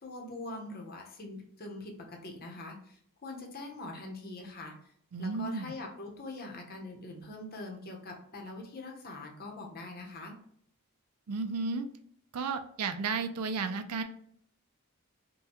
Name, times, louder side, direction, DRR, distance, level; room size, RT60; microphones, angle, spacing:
voice 1, 0.0-4.7 5.2-10.3, left 2 dB, 45° left, 1 dB, 0.8 m, -43 dB
voice 2, 5.1-5.7 11.3-11.9 12.3-14.0, right 4 dB, 85° right, 8 dB, 0.5 m, -33 dB
5.3 x 2.2 x 2.9 m, 0.65 s
head